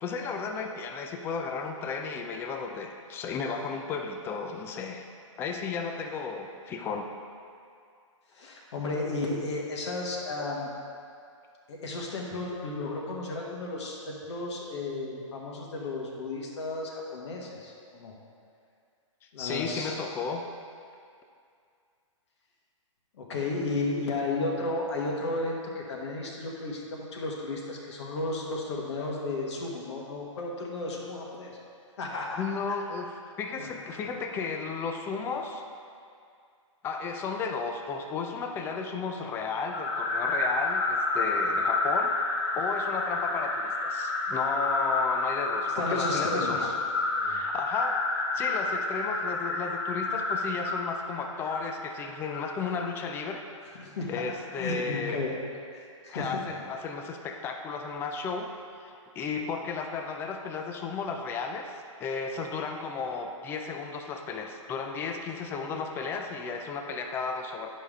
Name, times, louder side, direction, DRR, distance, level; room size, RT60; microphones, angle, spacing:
voice 1, 0.0-5.1 5.4-7.1 19.4-20.4 32.4-35.6 36.8-42.2 42.5-46.7 47.2-53.4 54.1-55.2 56.1-58.5 59.2-61.7 62.0-67.7, left 5 dB, 15° left, 4 dB, 0.4 m, -34 dB
voice 2, 8.3-10.7 11.7-18.1 19.3-19.9 23.2-31.6 32.0-32.4 33.6-33.7 45.7-46.8 47.2-47.4 53.8-54.1 54.5-55.4 55.7-56.4, left 2 dB, 55° left, -2 dB, 1.5 m, -33 dB
sound 1, 39.7-53.1, left 3 dB, 35° left, 0.9 m, -29 dB
10.0 x 5.5 x 3.6 m, 2.3 s
hypercardioid pair, 145°, 17 cm